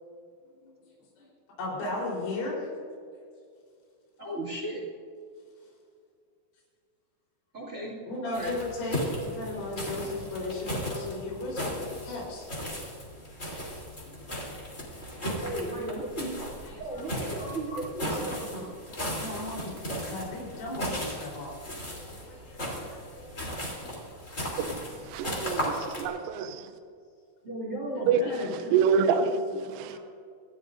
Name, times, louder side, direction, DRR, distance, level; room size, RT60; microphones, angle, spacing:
voice 1, 1.6-2.7 8.1-12.5 14.0-14.4 16.6-17.1 19.2-19.7 20.1-21.5 21.9-23.9 24.5-24.7 28.2-28.3 29.6-30.0, left 2 dB, 90° left, -4 dB, 6.7 m, -36 dB
voice 2, 4.2-4.8 7.5-8.0 8.2-8.6 15.4-16.3 16.7-18.7 27.4-28.8, right 1 dB, 25° right, -3 dB, 2.0 m, -35 dB
sound 1, 8.3-26.0, equal, 20° left, 2.9 m, -36 dB
voice 3, 25.1-26.6 28.1-28.2 28.7-29.4 29.8-30.0, right 6 dB, 85° right, 8 dB, 3.2 m, -26 dB
28.0 x 13.5 x 2.6 m, 2.3 s
omnidirectional pair, 5.5 m